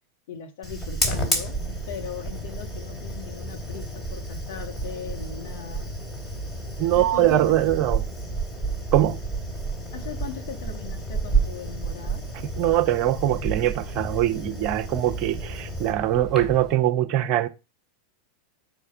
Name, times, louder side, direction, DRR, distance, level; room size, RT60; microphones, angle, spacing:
voice 1, 0.3-1.6 1.9-5.9 6.8-7.4 9.9-12.2, left 7 dB, 60° left, 1.5 m, -39 dB
Fire, 0.6-16.7, right 2 dB, 10° left, 2.5 m, -31 dB
voice 2, 6.8-8.0 8.9-9.2 12.4-17.5, right 12 dB, 45° right, 0.9 m, -22 dB
6.7 x 4.7 x 5.5 m
figure-of-eight pair, 90°, 0 cm